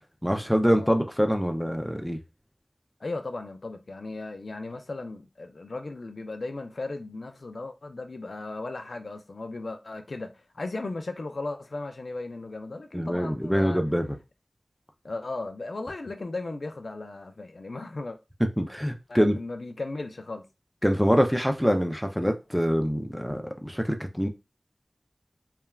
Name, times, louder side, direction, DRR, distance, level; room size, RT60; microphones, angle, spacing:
voice 1, 0.2-2.2 12.9-14.2 18.6-19.4 20.8-24.3, equal, ahead, 0.4 m, -25 dB
voice 2, 3.0-13.8 15.0-18.2 19.1-20.5, left 2 dB, 90° left, 0.4 m, -36 dB
3.2 x 2.2 x 2.3 m
wide cardioid pair, 65°, 0 cm